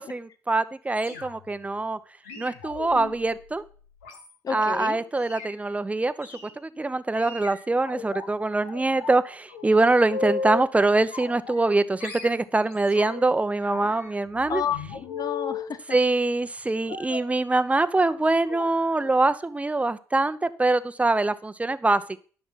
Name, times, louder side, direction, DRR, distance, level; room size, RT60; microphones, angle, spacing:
voice 1, 0.0-2.0 2.4-3.6 4.5-6.3 6.6-14.6 15.9-22.2, right 2 dB, 15° right, 13 dB, 0.8 m, -24 dB
sound 1, 1.0-1.6 2.2-4.7 5.2-5.5 6.2-6.5 7.2-8.3 8.7-9.2 9.5-10.7 11.1-11.7 12.0-13.3 13.6-15.7 16.9-17.3 18.0-18.2 18.5-18.7 19.0-19.2 19.5-19.6, left 5 dB, 85° left, 1.4 m, -37 dB
voice 2, 4.4-5.0 14.5-16.0, left 7 dB, 50° left, 11 dB, 1.0 m, -31 dB
10.0 x 6.0 x 5.7 m, 0.41 s
hypercardioid pair, 50°, 8 cm